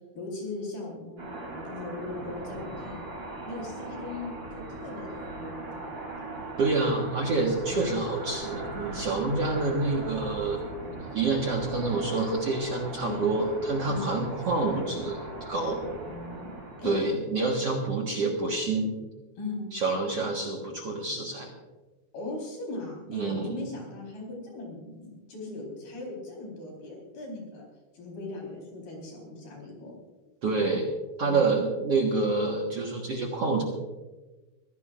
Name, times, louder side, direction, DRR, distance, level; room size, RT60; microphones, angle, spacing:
voice 1, 0.1-1.2 1.5-3.0 3.4-6.3 7.7-7.9 13.0-13.3 13.9-14.1 16.1-17.0 19.4-19.6 22.1-27.7 27.9-30.0 31.2-31.5, left 2 dB, 70° left, -1 dB, 6.2 m, -39 dB
sound 1, 1.2-17.2, right 2 dB, 30° right, 3.6 m, -39 dB
voice 2, 6.6-10.6 11.1-15.8 16.8-18.9 19.7-21.5 23.1-23.6 30.4-30.9 31.2-33.6, right 3 dB, 55° right, -1 dB, 2.0 m, -27 dB
23.5 x 16.5 x 2.5 m, 1.2 s
omnidirectional pair, 4.5 m